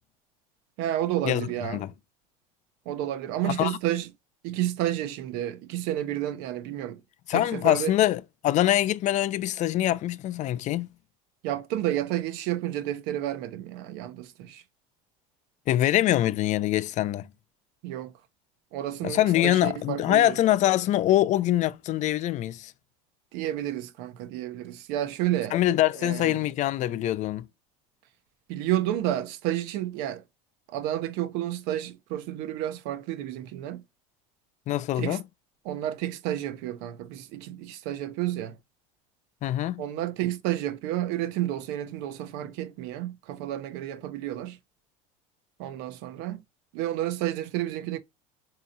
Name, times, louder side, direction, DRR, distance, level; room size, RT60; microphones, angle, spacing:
voice 1, 0.8-1.8 2.9-4.1 4.4-7.0 7.3-7.9 11.4-14.6 17.8-18.1 18.7-20.4 23.3-25.6 26.0-26.4 28.5-30.2 30.7-33.8 35.0-35.2 35.6-38.6 39.8-44.6 45.6-46.4 46.7-48.0, right 13 dB, 70° right, 0.6 m, -31 dB
voice 2, 3.4-3.8 7.3-10.9 15.7-17.3 19.0-22.7 25.5-27.4 34.7-35.2 39.4-39.8, left 13 dB, 45° left, 0.4 m, -24 dB
3.9 x 2.8 x 2.6 m
supercardioid pair, 105°, 18 cm